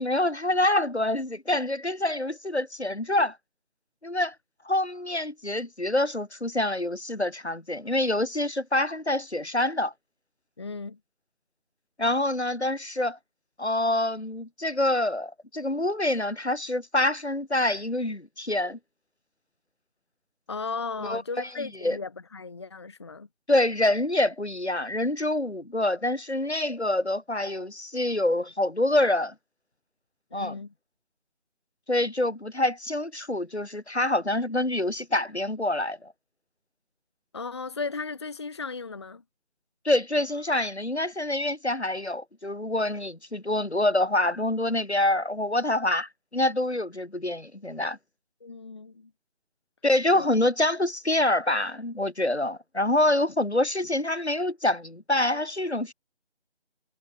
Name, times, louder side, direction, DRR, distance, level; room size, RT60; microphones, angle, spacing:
voice 1, 0.0-3.4 4.0-4.3 4.6-9.9 12.0-13.2 13.6-18.8 21.0-22.0 23.5-29.3 30.3-30.6 31.9-36.1 39.8-48.0 49.8-55.9, left 1 dB, 80° left, 4.6 m, -26 dB
voice 2, 10.6-11.0 20.5-23.3 30.3-30.7 37.3-39.2 48.4-49.1 50.1-50.3, left 4 dB, 25° left, 1.4 m, -36 dB
figure-of-eight pair, 160°, 33 cm